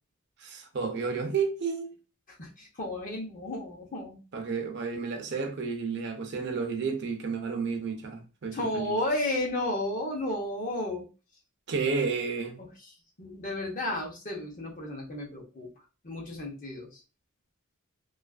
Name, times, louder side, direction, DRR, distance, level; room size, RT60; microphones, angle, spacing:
voice 1, 0.4-1.9 4.3-9.0 11.7-12.6, right 5 dB, 55° right, 0.5 m, -31 dB
voice 2, 2.3-4.2 8.5-11.1 12.8-12.9 13.2-15.7 16.0-17.0, left 1 dB, 40° left, 0.7 m, -33 dB
2.4 x 2.4 x 2.3 m
head